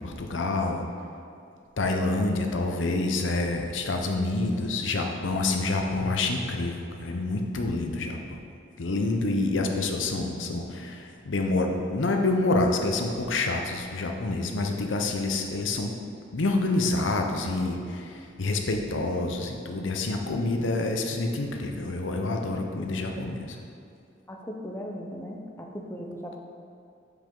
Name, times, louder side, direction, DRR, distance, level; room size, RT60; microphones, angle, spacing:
voice 1, 0.0-0.8 1.8-8.2 8.8-15.9 16.3-23.6, left 2 dB, 85° left, 3 dB, 0.7 m, -27 dB
voice 2, 24.3-26.4, equal, 15° left, 0 dB, 0.6 m, -38 dB
7.1 x 4.9 x 3.8 m, 2.5 s
head